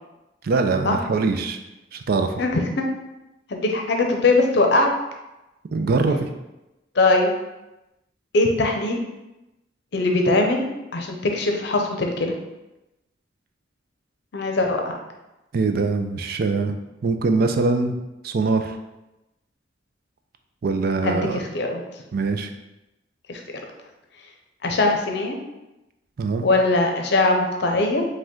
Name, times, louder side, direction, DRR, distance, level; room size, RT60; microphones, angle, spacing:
voice 1, 0.4-1.6 1.9-2.3 5.7-6.3 15.5-16.7 17.0-18.0 18.2-18.8 20.6-21.4 22.1-22.5 26.2-26.4, right 3 dB, 55° right, 6 dB, 0.4 m, -22 dB
voice 2, 2.4-2.9 3.5-4.9 7.0-7.3 8.3-9.0 9.9-10.7 10.9-12.3 14.3-15.0 21.0-21.8 23.3-23.4 24.6-25.4 26.4-28.1, left 2 dB, 60° left, 3 dB, 0.6 m, -21 dB
5.0 x 2.2 x 3.7 m, 0.98 s
head